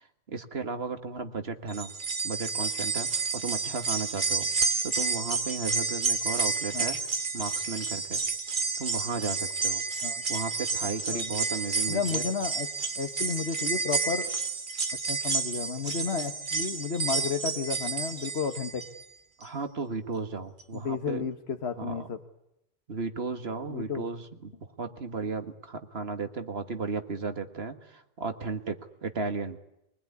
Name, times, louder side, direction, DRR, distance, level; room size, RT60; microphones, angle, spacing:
voice 1, 0.0-1.9 2.2-4.5 4.8-8.2 8.8-9.8 10.3-12.2 19.4-21.3 21.8-22.1 22.9-29.6, right 4 dB, 75° right, 7 dB, 1.9 m, -35 dB
sound 1, 1.7-19.0 19.4-19.5 20.6-20.7, right 4 dB, 55° right, 1.5 m, -30 dB
voice 2, 11.9-12.7 13.0-14.3 15.1-18.9 20.7-22.2 23.7-24.0, left 5 dB, 90° left, 6 dB, 1.7 m, -32 dB
24.5 x 20.5 x 9.7 m, 0.85 s
omnidirectional pair, 1.0 m